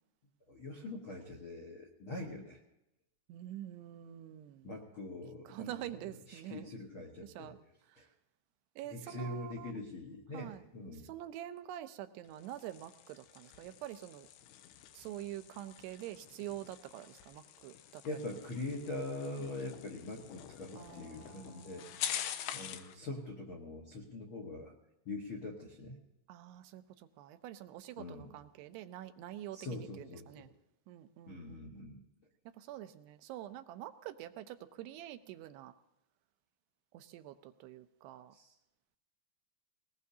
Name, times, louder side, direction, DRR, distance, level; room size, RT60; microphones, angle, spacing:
voice 1, 0.5-2.6 4.6-6.0 6.3-7.5 8.0-8.1 8.8-11.1 18.0-22.1 22.5-24.7 25.0-26.0 28.0-28.3 29.5-30.5 31.3-32.0 38.3-38.5, left 2 dB, 70° left, 1 dB, 1.2 m, -43 dB
voice 2, 3.3-4.7 5.5-6.7 7.2-7.6 8.8-9.7 10.3-10.6 10.9-14.3 14.9-18.0 20.8-22.6 26.3-30.5 30.9-31.7 32.6-35.7 36.9-38.3, right 12 dB, 85° right, 10 dB, 2.7 m, -46 dB
sound 1, 12.3-23.0, left 11 dB, 85° left, 2.8 m, -46 dB
20.0 x 19.5 x 2.8 m, 0.86 s
omnidirectional pair, 4.8 m